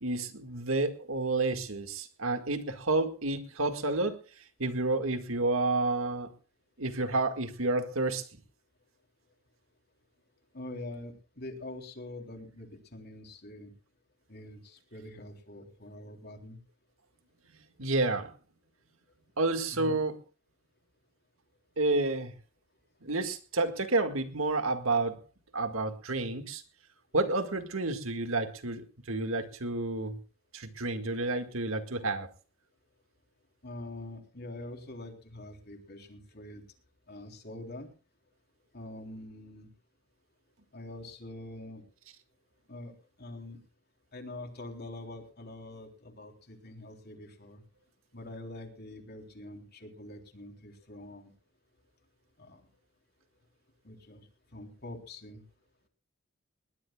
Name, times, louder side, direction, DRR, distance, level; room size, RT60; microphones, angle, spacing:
voice 1, 0.0-4.2 4.6-6.3 6.8-8.3 17.8-18.3 19.4-20.1 21.8-22.3 23.0-25.2 25.5-26.6 27.1-30.2 30.5-32.3, right 2 dB, 75° right, 8 dB, 2.0 m, -30 dB
voice 2, 10.5-13.7 14.3-16.6 19.7-20.0 33.6-36.6 37.1-37.9 38.7-39.7 40.7-41.8 42.7-42.9 43.2-43.6 44.1-47.6 48.1-51.3 52.4-52.6 53.8-54.3 54.5-55.4, left 1 dB, 50° left, 4 dB, 3.7 m, -44 dB
21.0 x 20.0 x 2.4 m, 0.34 s
head